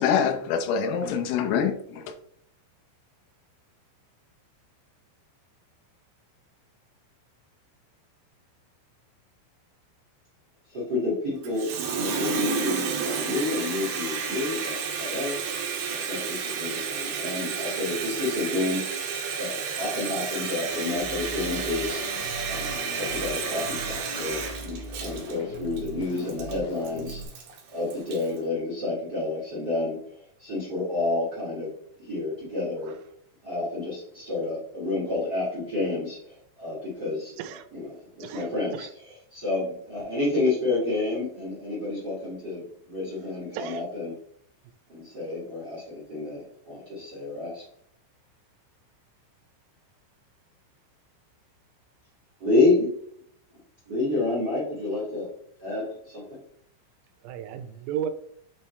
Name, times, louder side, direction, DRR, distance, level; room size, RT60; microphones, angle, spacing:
voice 1, 0.0-2.1, left 7 dB, 85° left, 6 dB, 3.4 m, -25 dB
voice 2, 10.7-15.4 15.9-18.8 19.4-22.0 22.5-27.2 27.7-31.7 32.0-32.9 33.4-37.3 37.7-38.9 39.3-44.1 44.9-47.6 52.4-52.9 53.8-55.3 55.6-56.4, left 2 dB, 40° right, -8 dB, 1.4 m, -29 dB
Water tap faucet, 11.4-28.4, right 6 dB, 70° right, 2.6 m, -31 dB
sound 1, 20.7-27.2, equal, 65° left, 2.4 m, -40 dB
voice 3, 38.2-38.9 43.5-43.8 57.2-58.1, right 9 dB, 85° right, 11 dB, 3.2 m, -34 dB
8.6 x 4.3 x 3.2 m, 0.66 s
omnidirectional pair, 5.9 m